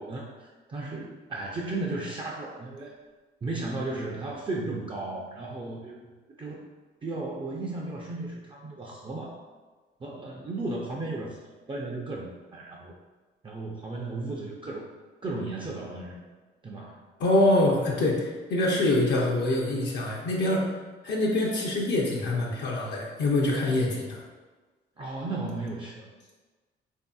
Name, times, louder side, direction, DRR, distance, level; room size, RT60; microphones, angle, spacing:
voice 1, 0.0-2.9 3.4-6.0 6.4-6.7 7.0-9.4 10.0-12.9 13.4-14.9 15.2-16.2 16.6-17.0 25.0-26.1, right 2 dB, 25° right, -3 dB, 0.4 m, -35 dB
voice 2, 17.2-20.7 21.0-24.2, left 1 dB, 60° left, -2 dB, 0.5 m, -25 dB
3.3 x 2.6 x 2.3 m, 1.3 s
cardioid pair, 90°, 20 cm